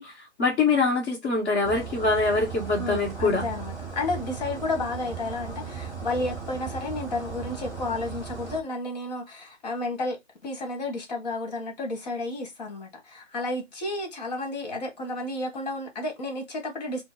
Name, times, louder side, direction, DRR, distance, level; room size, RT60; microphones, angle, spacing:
voice 1, 0.0-3.4, left 3 dB, 15° left, 1.0 m, -24 dB
sound 1, 1.6-8.6, right 6 dB, 5° right, 0.9 m, -37 dB
voice 2, 2.8-10.2 10.4-17.0, left 2 dB, 35° left, 1.4 m, -32 dB
4.0 x 2.0 x 3.7 m
figure-of-eight pair, 150°, 36 cm